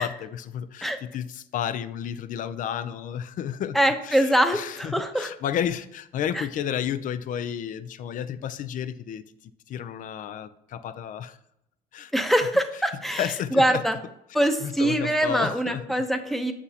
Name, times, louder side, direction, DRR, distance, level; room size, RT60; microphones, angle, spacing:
voice 1, 0.0-3.8 4.0-11.4 11.9-12.1 13.1-13.8 14.6-15.8, left 9 dB, 50° left, 14 dB, 0.4 m, -32 dB
voice 2, 3.7-5.3 6.3-6.4 12.1-14.0 14.3-16.5, right 1 dB, ahead, 7 dB, 0.7 m, -23 dB
7.9 x 6.0 x 2.8 m, 0.78 s
cardioid pair, 110°, 17 cm